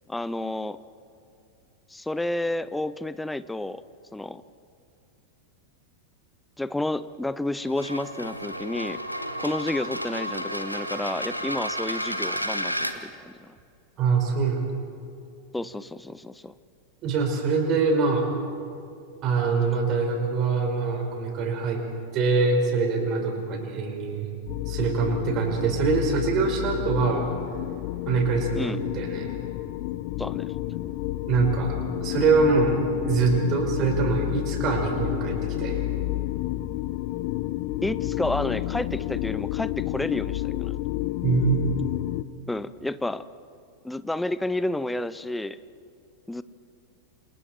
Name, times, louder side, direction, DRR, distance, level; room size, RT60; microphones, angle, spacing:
voice 1, 0.1-0.8 1.9-3.8 4.1-4.4 6.6-9.0 9.4-13.6 15.5-16.5 28.5-29.3 30.2-30.5 37.8-40.7 42.5-43.3 43.8-45.6 46.3-46.4, left 1 dB, 5° left, 16 dB, 0.6 m, -30 dB
sound 1, 7.6-12.9, equal, 90° left, 1.4 m, -31 dB
voice 2, 14.0-14.6 17.0-18.3 19.2-21.8 22.1-24.3 24.7-27.3 28.1-29.3 31.3-35.8 41.2-41.6, right 4 dB, 35° right, 3 dB, 4.9 m, -24 dB
sound 2, 24.5-42.2, left 16 dB, 45° left, 0.8 m, -30 dB
28.0 x 27.5 x 4.5 m, 2.6 s
figure-of-eight pair, 90°, 0 cm